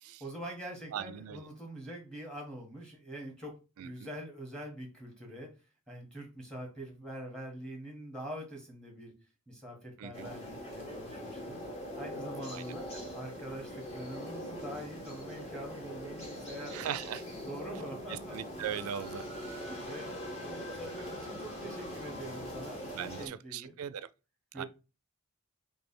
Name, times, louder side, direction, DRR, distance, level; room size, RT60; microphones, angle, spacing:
voice 1, 0.2-5.5 5.9-9.1 9.5-11.7 12.0-12.9 13.1-16.9 17.5-18.4 19.5-20.1 20.4-23.7 24.5-24.7, right 1 dB, 5° left, 1.3 m, -44 dB
voice 2, 0.9-1.4 3.8-4.1 10.0-10.3 12.5-12.6 16.7-17.2 18.1-19.3 22.9-24.1 24.5-24.6, right 9 dB, 90° right, 0.4 m, -39 dB
sound 1, 10.1-23.3, equal, 30° left, 1.4 m, -42 dB
3.3 x 3.3 x 4.3 m
head